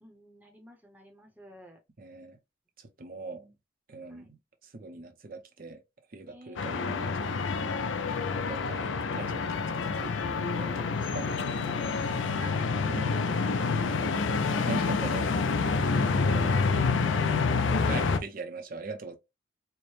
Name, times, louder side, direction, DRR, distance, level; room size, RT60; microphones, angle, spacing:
voice 1, 0.0-1.8 4.1-4.3 6.2-6.6 10.6-10.9 11.7-12.7 13.2-14.2 16.1-17.1, right 1 dB, 10° right, 0.8 m, -51 dB
voice 2, 2.0-2.4 2.8-3.6 3.9-4.4 4.6-5.8 6.1-7.6 8.5-9.6 10.0-10.2 10.6-11.3 12.9-13.2 14.6-15.4 16.1-16.5 17.8-19.2, right 3 dB, 50° right, 0.6 m, -41 dB
sound 1, 6.6-18.2, left 4 dB, 80° left, 0.5 m, -28 dB
4.5 x 2.1 x 3.1 m
head